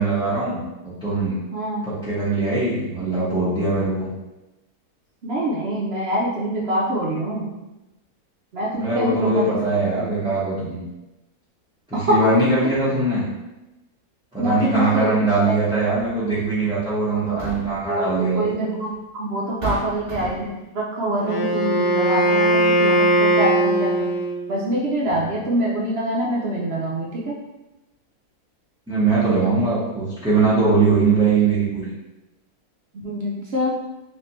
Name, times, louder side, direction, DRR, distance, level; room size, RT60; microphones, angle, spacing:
voice 1, 0.0-1.4 1.9-4.1 8.7-10.8 11.9-13.2 14.3-18.7 28.9-31.9, right 3 dB, 5° right, -13 dB, 0.8 m, -21 dB
voice 2, 1.5-1.9 5.2-7.5 8.5-9.6 11.9-12.5 14.4-15.2 15.5-15.6 17.1-17.4 17.8-24.1 24.5-27.3 32.9-33.7, right 1 dB, 60° right, -4 dB, 0.7 m, -25 dB
sound 1, 16.0-16.1 17.1-17.9 18.9-19.0 19.6-20.6, right 2 dB, 30° right, 1.5 m, -31 dB
Wind instrument woodwind instrument, 21.2-24.5, right 1 dB, 70° left, 1.0 m, -19 dB
3.2 x 3.2 x 3.0 m, 1.0 s
omnidirectional pair, 1.6 m